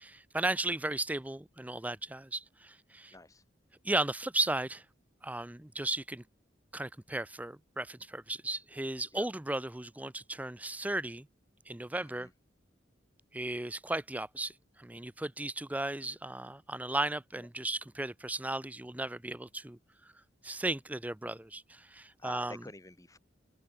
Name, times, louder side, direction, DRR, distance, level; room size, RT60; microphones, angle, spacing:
voice 1, 0.0-3.1 3.8-4.8 5.2-6.2 6.7-11.3 11.7-12.3 13.3-20.1 20.4-22.6, right 2 dB, 10° right, 0.6 m, -35 dB
voice 2, 3.1-3.4 9.1-9.3 12.0-12.3 17.4-17.5 22.2-23.2, left 2 dB, 20° left, 1.5 m, -48 dB
open air
head